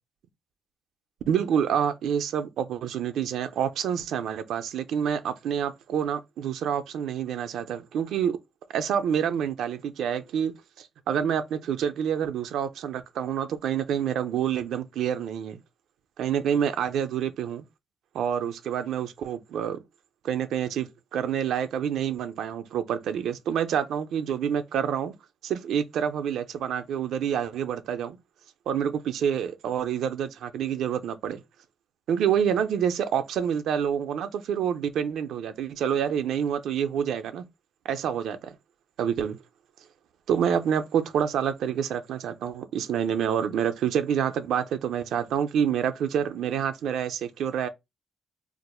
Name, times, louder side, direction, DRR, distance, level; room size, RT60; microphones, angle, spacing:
voice 1, 1.3-8.4 8.7-15.6 16.2-17.6 18.1-19.8 20.2-25.1 25.4-28.2 28.7-31.4 32.1-37.5 37.9-38.5 39.0-39.4 40.3-47.7, right 8 dB, 85° right, 0.4 m, -27 dB
4.1 x 2.4 x 2.2 m
cardioid pair, 150°, 0 cm